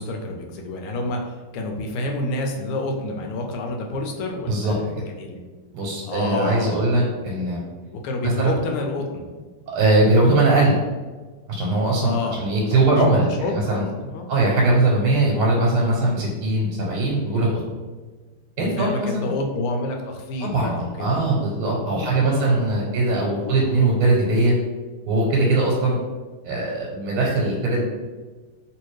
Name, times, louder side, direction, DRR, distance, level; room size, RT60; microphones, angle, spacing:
voice 1, 0.0-5.4 6.0-7.0 7.9-9.3 12.0-14.3 18.6-21.2 21.8-22.8 23.3-23.8, left 2 dB, 85° left, 2 dB, 1.5 m, -29 dB
voice 2, 5.7-7.6 8.2-8.6 9.7-10.7 11.5-13.8 14.3-17.6 18.6-19.3 20.4-24.5 25.1-26.0 26.4-27.9, right 2 dB, 90° right, -3 dB, 1.5 m, -20 dB
3.2 x 3.0 x 3.1 m, 1.3 s
omnidirectional pair, 2.3 m